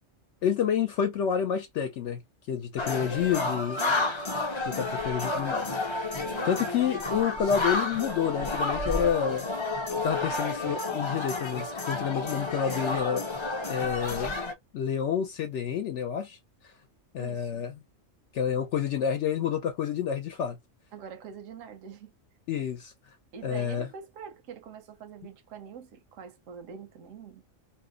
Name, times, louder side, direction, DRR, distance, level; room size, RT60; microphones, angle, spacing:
voice 1, 0.4-2.2 2.5-3.8 4.6-5.8 6.5-9.5 10.0-13.2 13.7-14.4 14.7-16.4 17.1-17.7 18.3-20.6 22.5-22.9 23.4-23.9, left 8 dB, 70° left, 0.9 m, -29 dB
sound 1, 2.8-14.5, left 2 dB, 35° left, 0.4 m, -31 dB
voice 2, 3.8-4.3 6.3-6.6 17.2-17.6 20.9-22.1 23.3-27.4, right 7 dB, 85° right, 1.0 m, -45 dB
2.6 x 2.0 x 3.6 m
omnidirectional pair, 1.3 m